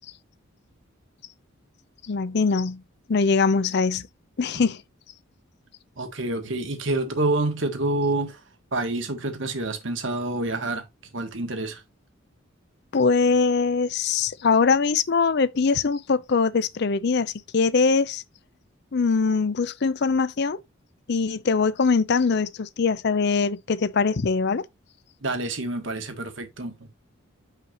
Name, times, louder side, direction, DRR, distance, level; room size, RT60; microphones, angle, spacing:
voice 1, 2.0-2.8 3.1-4.0 4.4-4.8 12.9-18.2 18.9-20.6 21.1-24.6, left 4 dB, 50° left, 0.5 m, -22 dB
voice 2, 6.0-8.4 8.7-10.8 11.1-11.8 25.2-26.9, right 2 dB, 60° right, 1.5 m, -27 dB
6.5 x 5.8 x 2.9 m
head